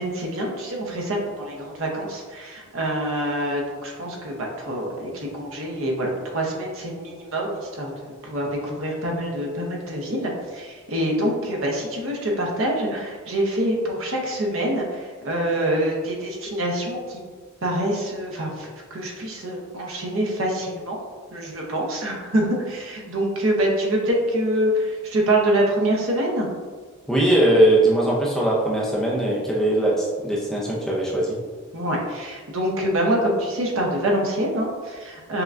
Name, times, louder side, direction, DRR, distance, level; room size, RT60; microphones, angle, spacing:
voice 1, 0.0-17.3 17.6-21.0 21.3-26.5 31.7-35.4, right 1 dB, 65° right, -1 dB, 0.7 m, -25 dB
voice 2, 27.1-31.4, right 1 dB, ahead, -5 dB, 0.4 m, -20 dB
5.6 x 2.2 x 2.5 m, 1.5 s
head